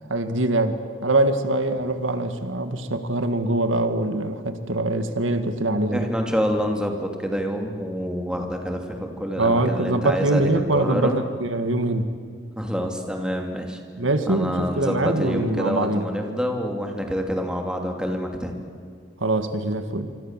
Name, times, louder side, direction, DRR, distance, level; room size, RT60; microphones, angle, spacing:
voice 1, 0.0-6.1 9.4-12.1 14.0-16.0 19.2-20.1, right 2 dB, 85° right, 9 dB, 1.9 m, -23 dB
voice 2, 5.9-11.2 12.5-13.8 14.3-18.5, equal, 5° right, 3 dB, 2.8 m, -27 dB
26.5 x 25.5 x 7.5 m, 2.2 s
head